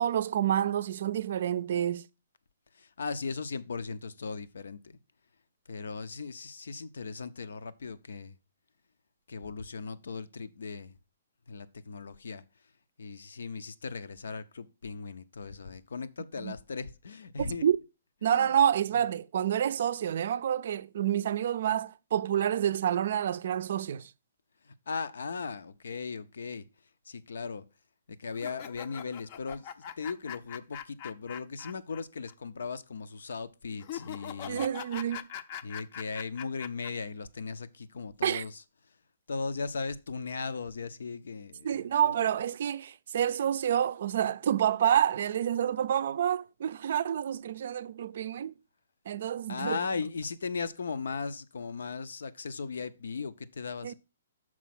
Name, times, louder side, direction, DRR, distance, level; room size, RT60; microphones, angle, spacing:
voice 1, 0.0-2.0 16.4-16.5 17.4-17.8 18.2-24.1 34.5-35.3 38.2-38.4 41.6-48.5 49.1-49.8 53.8-53.9, right 10 dB, 60° right, 0.4 m, -28 dB
voice 2, 2.7-5.0 5.7-8.4 9.3-11.0 11.5-12.4 13.0-17.6 18.2-18.5 24.6-26.6 27.1-27.6 28.1-34.6 35.6-38.6 39.3-42.1 49.5-53.9, left 4 dB, 80° left, 0.6 m, -38 dB
sound 1, 28.3-32.0 32.3-32.4 33.8-36.9, left 10 dB, 40° left, 0.5 m, -42 dB
6.2 x 4.6 x 5.9 m
hypercardioid pair, 155°, 0 cm